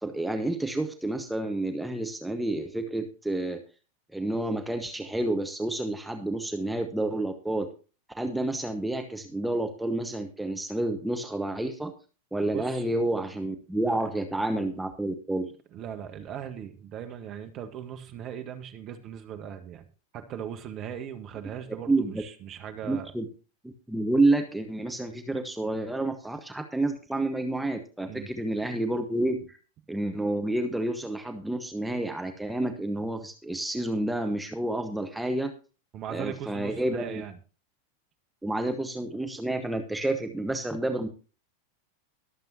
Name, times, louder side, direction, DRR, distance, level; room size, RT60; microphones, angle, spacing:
voice 1, 0.0-3.6 4.1-7.7 8.2-11.9 12.3-15.5 21.9-22.1 22.8-23.3 23.6-29.4 29.9-35.5 36.1-37.2 38.4-41.1, right 2 dB, 5° right, 6 dB, 1.2 m, -29 dB
voice 2, 12.5-12.8 13.7-14.1 15.7-19.8 20.1-23.1 28.0-28.3 35.9-37.4, right 9 dB, 35° right, 7 dB, 1.4 m, -39 dB
22.5 x 7.6 x 2.8 m, 0.35 s
figure-of-eight pair, 90°, 0 cm